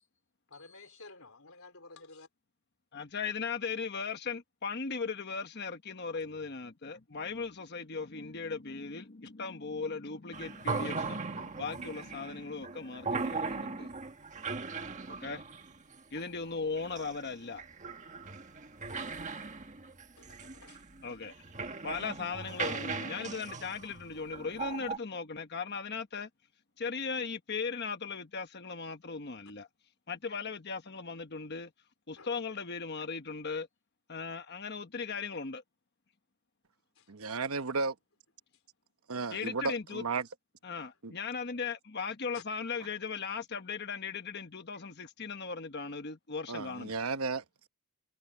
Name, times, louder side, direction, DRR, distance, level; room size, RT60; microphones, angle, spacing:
voice 1, 0.5-2.3 6.1-6.2 19.1-19.8 20.2-20.9 32.2-32.3 36.9-37.4 38.5-38.6 42.3-42.4, left 3 dB, 65° left, 4.6 m, -54 dB
voice 2, 2.9-13.9 15.1-15.4 16.1-17.6 21.0-21.4 21.8-26.3 26.8-29.7 30.1-31.7 32.1-33.7 34.1-35.6 39.3-40.0 40.6-47.0, left 5 dB, 50° left, 1.1 m, -38 dB
sound 1, 10.3-25.0, right 4 dB, 35° right, 1.5 m, -39 dB
voice 3, 37.1-37.9 39.1-40.3 46.5-47.7, right 4 dB, 70° right, 1.1 m, -34 dB
head